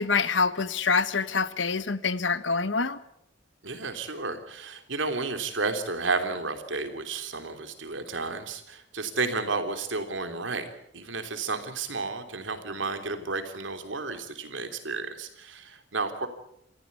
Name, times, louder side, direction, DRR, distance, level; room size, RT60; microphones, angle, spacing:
voice 1, 0.0-3.0, left 4 dB, 75° left, 14 dB, 1.3 m, -26 dB
voice 2, 3.6-10.7 10.9-16.3, right 3 dB, 80° right, 7 dB, 3.3 m, -32 dB
28.0 x 15.0 x 8.4 m, 0.76 s
head